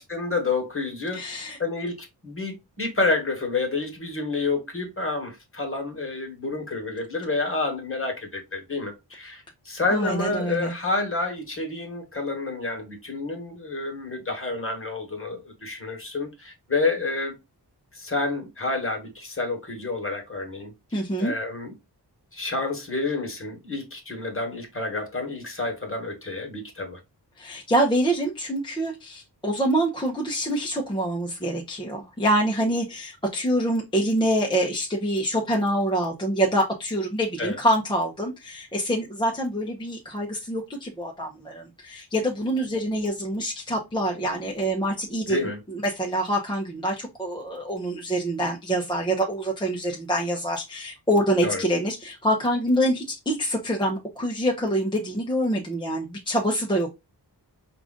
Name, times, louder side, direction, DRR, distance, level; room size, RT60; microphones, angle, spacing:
voice 1, 0.0-1.2 1.6-17.3 17.9-21.7 22.3-27.0 37.4-37.6 45.2-45.6 51.4-51.6, left 3 dB, 30° left, 1.4 m, -29 dB
voice 2, 1.1-1.6 9.9-10.7 20.9-21.3 27.4-56.9, right 1 dB, 10° left, 0.7 m, -26 dB
4.8 x 2.5 x 3.7 m
wide cardioid pair, 100°, 41 cm